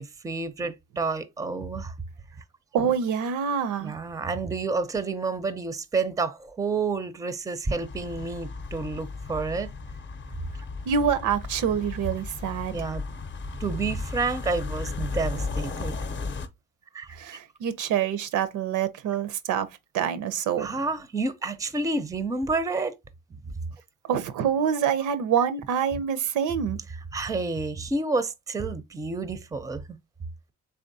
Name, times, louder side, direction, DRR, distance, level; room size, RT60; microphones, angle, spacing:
voice 1, 0.0-2.0 3.8-9.7 12.7-13.0 13.6-16.0 16.9-17.2 20.6-23.0 25.4-25.5 27.1-30.0, right 3 dB, 10° right, 0.4 m, -29 dB
voice 2, 2.7-3.9 10.9-12.8 17.2-19.7 19.9-20.7 24.1-26.8, right 8 dB, 85° right, 0.6 m, -26 dB
sound 1, 7.8-16.5, left 4 dB, 40° left, 0.6 m, -35 dB
3.5 x 3.4 x 2.6 m
cardioid pair, 90°, 30 cm